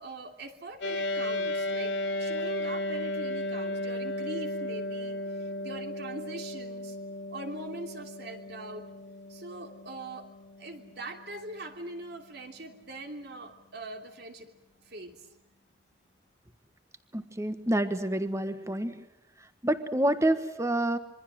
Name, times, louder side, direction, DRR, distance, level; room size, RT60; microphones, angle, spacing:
voice 1, 0.0-1.9 2.2-7.0 7.3-8.9 9.3-10.3 10.6-14.5 14.8-15.3, right 2 dB, 60° right, 4 dB, 3.0 m, -42 dB
sound 1, 0.8-12.3, left 1 dB, 90° left, 3.4 m, -35 dB
voice 2, 17.1-19.0 19.6-21.0, right 1 dB, 15° right, 10 dB, 1.5 m, -28 dB
26.5 x 23.5 x 7.7 m, 0.90 s
head